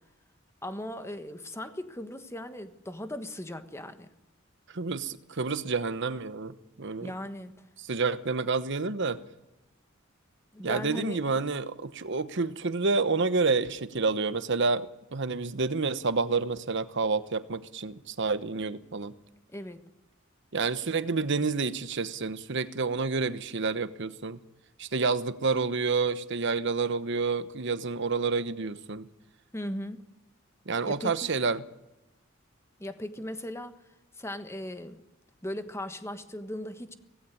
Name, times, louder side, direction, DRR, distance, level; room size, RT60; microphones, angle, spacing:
voice 1, 0.6-4.1 7.0-7.5 10.5-11.2 19.5-19.8 29.5-30.0 30.8-31.3 32.8-33.8 34.2-35.0 35.4-36.9, left 1 dB, 15° left, 1.3 m, -38 dB
voice 2, 4.7-7.1 7.8-9.2 10.6-19.1 20.5-24.4 24.8-29.1 30.7-31.6, right 4 dB, 65° right, 1.1 m, -29 dB
17.0 x 16.0 x 9.7 m
head